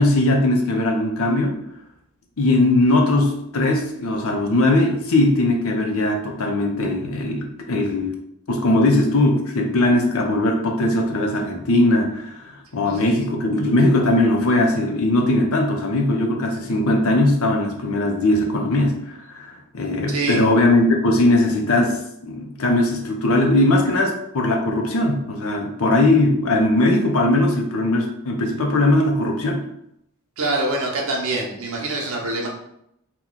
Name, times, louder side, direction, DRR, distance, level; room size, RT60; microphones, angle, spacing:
voice 1, 0.0-1.6 2.4-8.1 8.5-29.6, left 1 dB, 65° left, 2 dB, 0.6 m, -19 dB
voice 2, 20.1-20.4 30.4-32.5, right 2 dB, 65° right, -1 dB, 0.8 m, -25 dB
2.9 x 2.2 x 3.8 m, 0.76 s
head